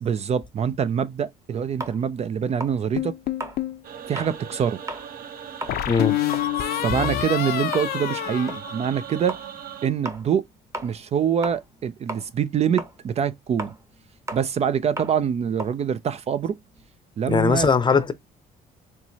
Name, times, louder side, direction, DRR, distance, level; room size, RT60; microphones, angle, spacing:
voice 1, 0.0-3.1 4.1-4.8 6.7-9.4 9.8-10.5 10.8-13.7 14.3-16.6 17.2-17.7, right 8 dB, 40° right, 0.4 m, -25 dB
sound 1, 1.8-4.4 4.8-5.1 5.4-11.8 12.1-16.9, right 1 dB, 20° right, 1.0 m, -37 dB
sound 2, 3.0-3.8 5.7-9.3, left 13 dB, 65° left, 0.6 m, -27 dB
sound 3, 3.8-9.9, right 8 dB, 60° right, 0.8 m, -39 dB
voice 2, 5.9-6.2 17.3-18.1, left 5 dB, 25° left, 0.7 m, -19 dB
4.5 x 3.0 x 2.8 m
cardioid pair, 110°, 17 cm